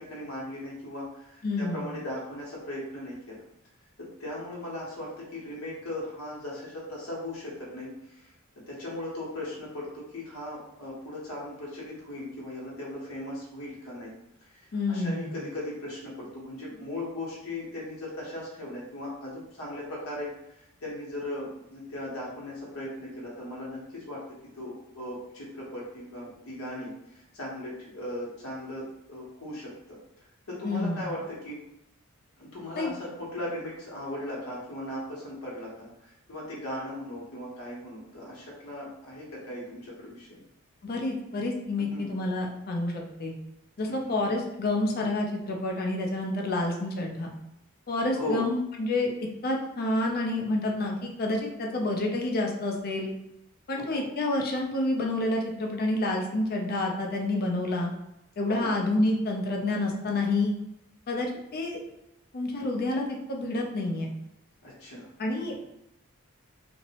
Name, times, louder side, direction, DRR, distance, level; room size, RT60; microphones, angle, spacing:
voice 1, 0.0-3.4 4.0-8.3 8.7-14.1 14.4-24.2 24.5-31.6 32.4-40.4 41.8-42.1 43.9-44.2 48.1-48.5 53.8-54.1 58.5-58.7 64.6-65.1, left 1 dB, 75° left, -5 dB, 0.8 m, -38 dB
voice 2, 1.4-1.8 14.7-15.3 30.6-31.1 32.7-32.9 40.8-43.3 43.8-47.3 47.9-49.1 49.4-53.1 53.7-57.9 58.4-60.5 61.1-61.3 61.5-61.8 62.3-64.1 65.2-65.6, left 2 dB, 45° left, 1 dB, 0.5 m, -28 dB
2.6 x 2.0 x 2.8 m, 0.85 s
head